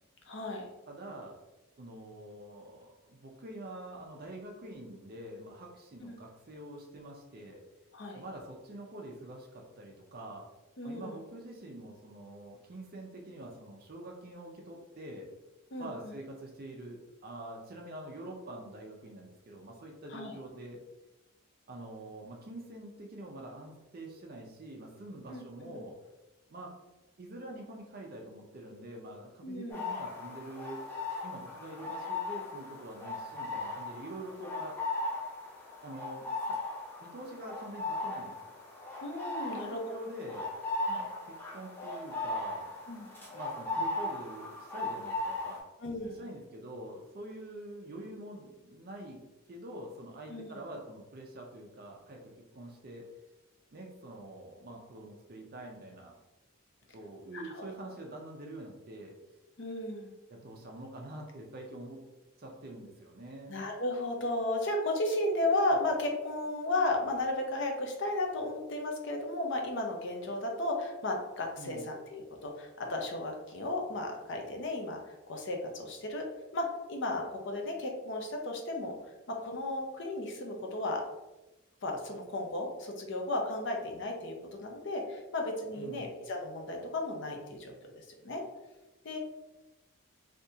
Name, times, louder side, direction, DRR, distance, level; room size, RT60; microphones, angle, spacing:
voice 1, 0.2-0.7 6.0-6.2 7.9-8.2 10.8-11.2 15.7-16.1 20.1-20.3 25.3-25.8 29.4-29.9 39.0-39.8 40.9-41.1 42.9-43.1 45.8-46.2 50.3-50.5 57.3-57.7 59.6-60.1 63.5-76.3 76.5-78.9 79.3-81.0 81.8-88.4 89.0-89.2, left 2 dB, 55° left, 2 dB, 0.6 m, -34 dB
voice 2, 0.9-1.4 1.8-7.6 8.1-10.5 10.8-15.3 15.8-20.8 21.7-25.9 26.5-26.8 27.2-30.8 31.2-34.8 35.8-36.6 37.0-38.5 39.5-40.5 41.3-42.8 43.2-45.6 46.2-49.2 49.5-53.1 53.7-56.2 56.9-59.1 60.3-62.0 62.4-63.6 71.6-71.8 85.8-86.1, right 1 dB, 45° right, 0 dB, 0.5 m, -45 dB
sound 1, 29.7-45.6, left 2 dB, 10° left, 0.6 m, -37 dB
3.4 x 2.7 x 2.7 m, 1.0 s
head